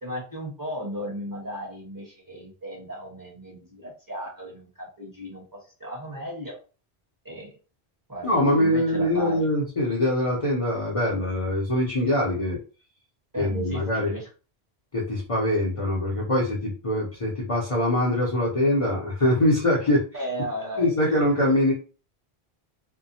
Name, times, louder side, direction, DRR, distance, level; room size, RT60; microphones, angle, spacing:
voice 1, 0.0-6.6 7.2-7.5 8.1-9.5 13.3-14.3 20.1-21.6, equal, 20° right, -5 dB, 1.1 m, -36 dB
voice 2, 8.2-12.6 13.4-14.1 14.9-20.0 20.8-21.7, left 1 dB, 40° left, -5 dB, 0.6 m, -23 dB
2.7 x 2.1 x 2.7 m, 0.35 s
omnidirectional pair, 1.1 m